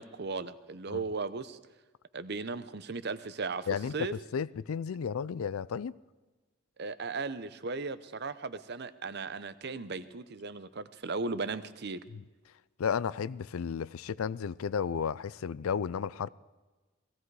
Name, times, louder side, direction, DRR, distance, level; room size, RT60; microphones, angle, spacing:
voice 1, 0.0-1.6 2.1-3.7 3.9-4.1 6.8-12.0, right 4 dB, 50° right, 0.7 m, -36 dB
voice 2, 4.3-5.9 12.1-12.2 12.8-16.3, left 7 dB, 80° left, 0.4 m, -33 dB
17.5 x 16.0 x 4.8 m
head